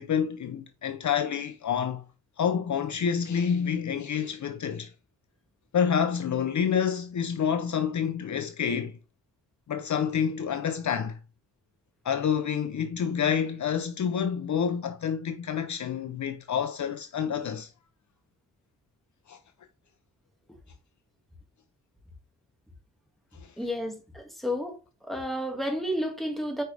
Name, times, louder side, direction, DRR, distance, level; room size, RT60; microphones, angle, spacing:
voice 1, 0.0-2.0 2.4-4.9 5.7-8.9 9.7-11.2 12.0-17.7 19.3-19.4, left 7 dB, 55° left, 0.7 m, -28 dB
voice 2, 23.6-24.8 25.0-26.6, equal, ahead, 1.9 m, -31 dB
8.8 x 4.8 x 3.4 m
wide cardioid pair, 150°, 35 cm